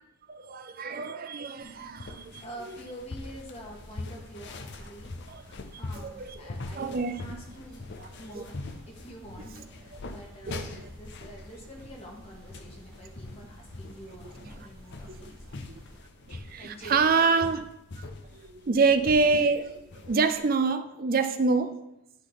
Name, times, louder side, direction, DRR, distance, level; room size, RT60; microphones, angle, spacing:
voice 1, 0.3-2.4 5.3-5.4 6.0-6.4 6.7-7.2 8.0-8.1 8.3-8.4 10.5-10.9 15.1-15.3 16.3-17.7 18.3-21.8, right 4 dB, 40° right, 0.5 m, -26 dB
sound 1, 1.6-20.4, left 2 dB, 50° left, 0.6 m, -43 dB
voice 2, 2.4-5.1 5.8-7.9 8.2-8.6 8.9-15.4 16.6-17.2, equal, 30° left, 1.5 m, -46 dB
sound 2, 3.5-16.0, equal, 60° right, 1.6 m, -51 dB
11.0 x 3.9 x 4.0 m
head